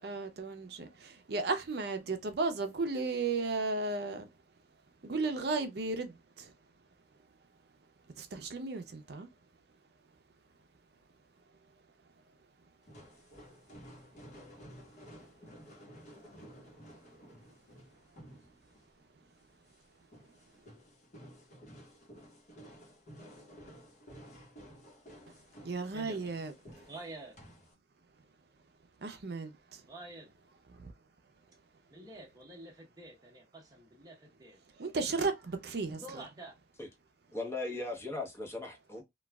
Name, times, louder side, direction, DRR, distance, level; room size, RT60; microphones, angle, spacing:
voice 1, 0.0-4.3 5.0-6.5 8.2-9.3 25.6-26.5 29.0-29.8 30.7-30.9 34.7-36.2, right 3 dB, 65° right, 0.5 m, -35 dB
sound 1, 12.8-27.7, equal, 45° left, 1.0 m, -54 dB
voice 2, 25.9-26.4 26.9-27.4 29.8-30.3 31.9-34.6 35.9-36.6, right 1 dB, 20° right, 0.9 m, -48 dB
voice 3, 37.3-39.0, left 2 dB, 15° left, 0.9 m, -38 dB
3.1 x 2.3 x 2.2 m
head